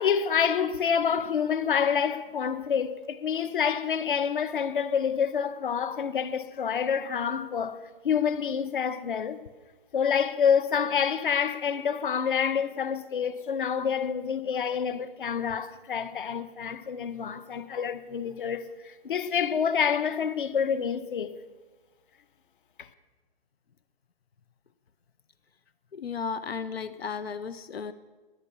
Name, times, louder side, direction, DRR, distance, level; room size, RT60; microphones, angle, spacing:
voice 1, 0.0-7.8 8.0-9.4 9.9-21.3 22.8-22.9, left 7 dB, 60° left, 1.2 m, -27 dB
voice 2, 25.9-27.9, left 6 dB, 85° left, 0.9 m, -34 dB
18.5 x 11.0 x 7.1 m
hypercardioid pair, 165°, 30 cm